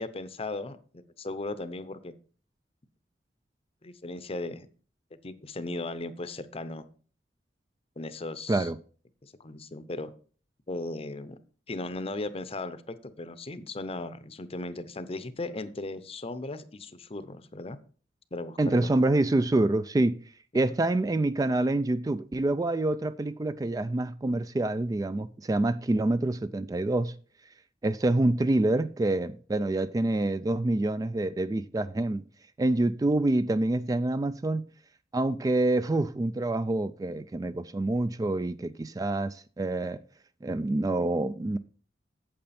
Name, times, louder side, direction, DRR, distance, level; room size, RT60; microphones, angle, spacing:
voice 1, 0.0-2.1 3.8-4.7 5.2-6.8 8.0-8.7 9.2-10.1 10.7-11.4 11.7-17.8 18.3-18.9 20.5-20.6, left 2 dB, 35° left, 0.7 m, -37 dB
voice 2, 18.6-20.2 20.5-27.1 27.8-32.2 32.6-34.6 35.1-40.0 40.4-41.6, right 2 dB, 20° right, 0.3 m, -26 dB
8.7 x 7.8 x 4.2 m
head